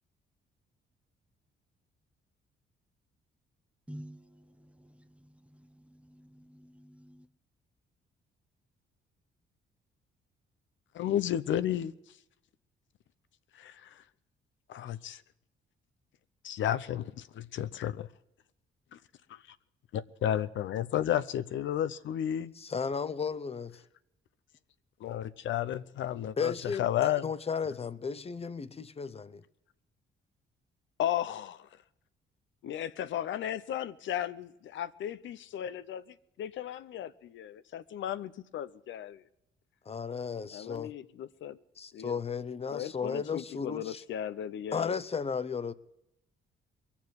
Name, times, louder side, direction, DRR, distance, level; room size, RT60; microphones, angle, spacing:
voice 1, 3.9-7.3, equal, 5° right, 0.8 m, -51 dB
voice 2, 10.9-12.2 13.5-14.0 14.7-15.2 16.4-18.1 19.9-22.5 25.0-27.3 31.0-31.8 32.6-39.2 40.5-41.6 41.9-42.2 42.7-44.9, left 11 dB, 70° left, 0.7 m, -34 dB
voice 3, 22.6-23.8 26.4-26.9 27.2-29.4 39.9-40.9 41.8-44.0 44.7-45.7, left 5 dB, 30° left, 0.8 m, -34 dB
21.5 x 7.2 x 9.4 m
cardioid pair, 90°, 20 cm